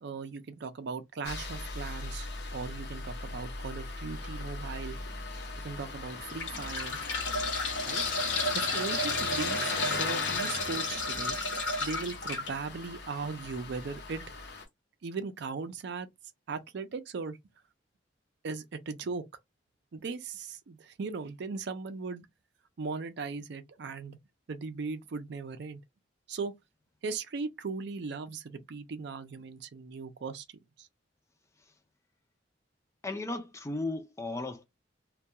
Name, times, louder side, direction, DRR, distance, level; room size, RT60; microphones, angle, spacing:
voice 1, 0.0-5.0 5.6-7.0 7.9-8.0 8.5-11.4 11.8-14.2 15.0-16.1 16.5-17.4 18.4-19.2 19.9-22.3 22.8-24.2 24.5-25.8 26.3-26.5 27.0-30.4 30.8-30.9, right 4 dB, 65° right, 0.4 m, -38 dB
Engine starting, 1.2-14.6, left 3 dB, 60° left, 0.7 m, -39 dB
sound 1, 4.2-4.4 5.1-5.2 6.1-12.5 14.1-14.2 14.5-14.6, left 2 dB, 85° left, 0.9 m, -32 dB
voice 2, 33.0-34.6, left 2 dB, 15° left, 0.4 m, -35 dB
2.2 x 2.2 x 2.7 m
head